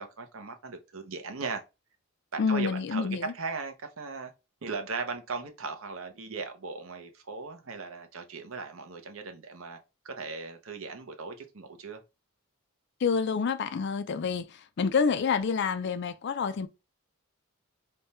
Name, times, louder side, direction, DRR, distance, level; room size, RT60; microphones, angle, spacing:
voice 1, 0.0-1.6 2.3-4.3 4.6-9.8 10.0-12.0, right 4 dB, 65° right, 0.8 m, -38 dB
voice 2, 2.4-3.3 13.0-16.7, left 5 dB, 50° left, 0.4 m, -28 dB
3.5 x 2.2 x 4.1 m
head